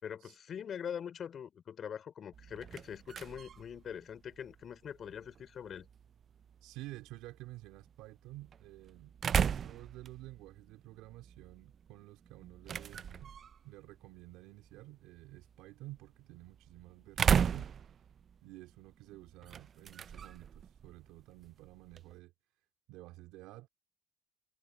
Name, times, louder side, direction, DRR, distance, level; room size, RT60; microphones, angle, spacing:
voice 1, 0.0-5.9, left 8 dB, 50° left, 4.7 m, -43 dB
sound 1, 2.3-22.2, right 7 dB, 45° right, 0.4 m, -38 dB
voice 2, 6.6-13.3 13.6-17.7 18.4-22.3 22.9-23.7, right 18 dB, 75° right, 2.4 m, -51 dB
supercardioid pair, 75°, 0 cm